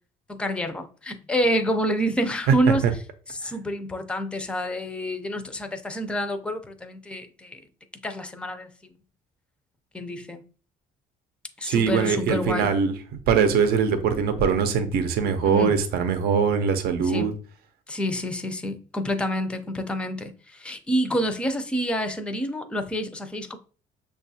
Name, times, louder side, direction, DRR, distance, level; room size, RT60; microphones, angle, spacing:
voice 1, 0.3-2.8 3.3-7.6 8.0-8.9 9.9-10.4 11.6-12.7 15.4-15.8 17.0-17.3 17.9-23.6, equal, 5° left, 0.4 m, -28 dB
voice 2, 11.6-12.9 13.3-17.3, right 6 dB, 70° right, 0.6 m, -22 dB
6.0 x 2.3 x 2.7 m
cardioid pair, 110°, 17 cm